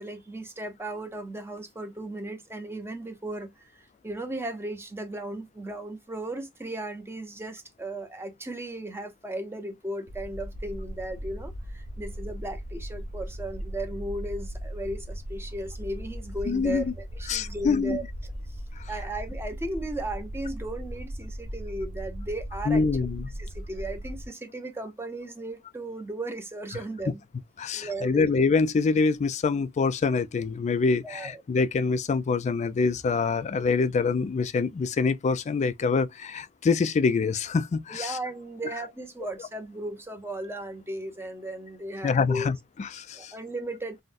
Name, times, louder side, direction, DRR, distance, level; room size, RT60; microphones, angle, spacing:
voice 1, 0.0-3.7 4.0-18.0 18.9-22.8 23.4-27.2 27.7-28.3 31.0-31.4 37.9-42.5 43.1-44.0, right 1 dB, 10° right, 0.6 m, -36 dB
sound 1, 10.1-24.3, equal, 70° right, 0.8 m, -38 dB
voice 2, 16.5-16.8 17.3-18.0 18.8-18.9 22.7-23.3 27.6-38.2 42.0-43.3, left 4 dB, 30° left, 0.3 m, -25 dB
3.8 x 2.1 x 2.5 m
head